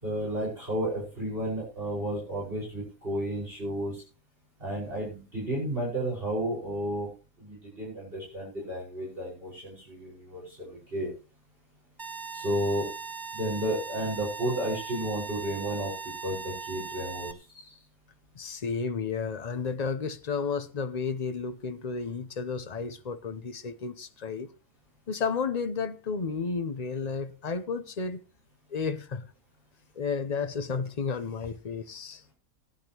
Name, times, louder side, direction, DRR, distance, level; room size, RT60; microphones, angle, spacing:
voice 1, 0.0-4.0 4.6-7.1 7.4-11.1 12.3-12.9 13.3-17.8, right 1 dB, 40° right, 5.9 m, -32 dB
sound 1, 12.0-17.3, right 5 dB, 20° right, 0.8 m, -39 dB
voice 2, 18.3-24.5 25.1-28.2 28.7-29.2 29.9-32.2, left 5 dB, 35° left, 0.8 m, -32 dB
18.5 x 10.0 x 3.0 m
omnidirectional pair, 1.5 m